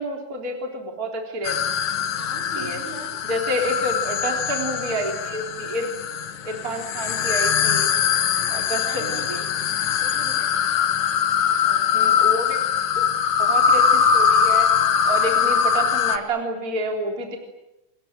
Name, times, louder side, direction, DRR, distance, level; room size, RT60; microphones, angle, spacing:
voice 1, 0.0-1.6 2.6-2.8 3.3-5.9 6.4-7.9 8.5-9.4 11.6-12.6 13.0-13.1 13.4-14.7 15.0-17.4, right 1 dB, 25° right, 2 dB, 3.8 m, -29 dB
sound 1, 1.4-16.2, left 7 dB, 60° left, 2.5 m, -22 dB
voice 2, 2.0-3.2 8.1-9.5 10.0-10.7, right 3 dB, 55° right, 1 dB, 6.8 m, -41 dB
29.0 x 22.0 x 9.1 m, 0.93 s
omnidirectional pair, 4.3 m